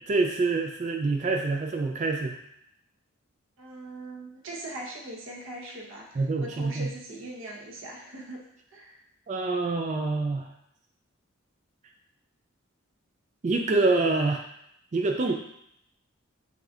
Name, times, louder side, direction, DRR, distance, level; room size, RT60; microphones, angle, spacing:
voice 1, 0.1-2.4 6.2-6.9 9.3-10.5 13.4-14.4 14.9-15.3, right 3 dB, 35° right, 3 dB, 0.3 m, -26 dB
voice 2, 3.6-8.4 8.7-9.0, right 1 dB, 70° right, -2 dB, 1.0 m, -41 dB
8.0 x 2.7 x 2.4 m, 0.75 s
head